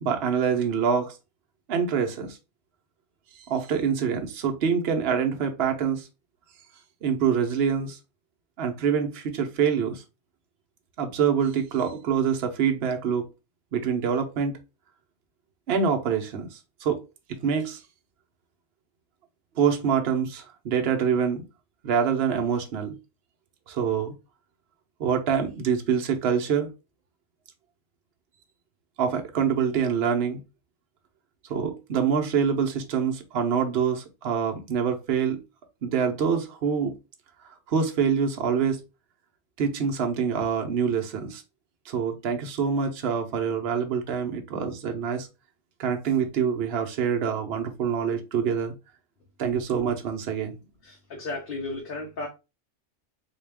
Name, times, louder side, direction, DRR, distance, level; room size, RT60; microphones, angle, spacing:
voice 1, 0.0-1.2 1.7-2.4 3.4-6.1 7.0-8.0 8.6-10.0 11.0-13.2 13.7-14.5 15.7-17.0 17.4-17.8 19.6-21.4 21.8-23.0 23.7-24.1 25.0-26.7 29.0-30.4 31.5-35.4 35.8-36.9 37.7-38.8 39.6-41.4 41.9-45.3 45.8-48.7 49.4-50.6, right 7 dB, 60° right, 0.9 m, -25 dB
voice 2, 50.8-52.3, left 2 dB, 50° left, 0.9 m, -34 dB
4.0 x 2.4 x 3.4 m
omnidirectional pair, 1.3 m